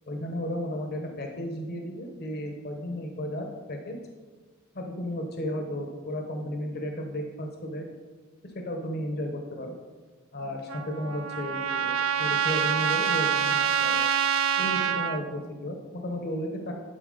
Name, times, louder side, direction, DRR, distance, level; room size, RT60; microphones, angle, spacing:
voice 1, 0.1-4.0 4.7-7.9 8.5-9.7 10.3-14.0 14.6-16.7, equal, 50° left, 3 dB, 0.9 m, -34 dB
Trumpet, 10.7-15.2, right 8 dB, 75° right, 0.5 m, -26 dB
11.5 x 4.5 x 5.0 m, 1.3 s
head